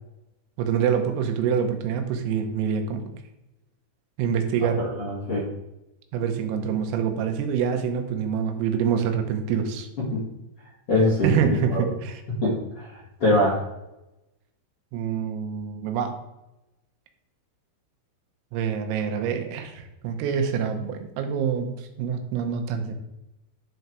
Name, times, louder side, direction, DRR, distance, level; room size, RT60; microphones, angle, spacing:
voice 1, 0.6-3.1 4.2-4.8 6.1-9.9 11.2-12.2 14.9-16.2 18.5-22.9, right 7 dB, 85° right, 6 dB, 3.6 m, -26 dB
voice 2, 4.8-5.4 10.1-10.2 10.9-11.9 12.4-12.9 13.2-13.7, left 1 dB, 45° left, -6 dB, 1.8 m, -23 dB
11.0 x 4.0 x 4.6 m, 0.95 s
omnidirectional pair, 5.9 m